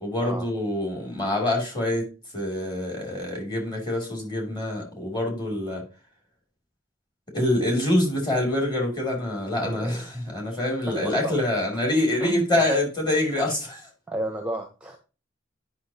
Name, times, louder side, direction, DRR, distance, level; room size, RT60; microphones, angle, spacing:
voice 1, 0.0-2.1 2.3-5.8 7.3-10.0 10.3-13.8, left 1 dB, 25° left, 2.7 m, -25 dB
voice 2, 9.6-10.1 10.5-10.6 10.9-11.4 12.2-12.5 14.1-15.0, right 1 dB, 5° right, 0.8 m, -33 dB
10.0 x 5.6 x 2.8 m
head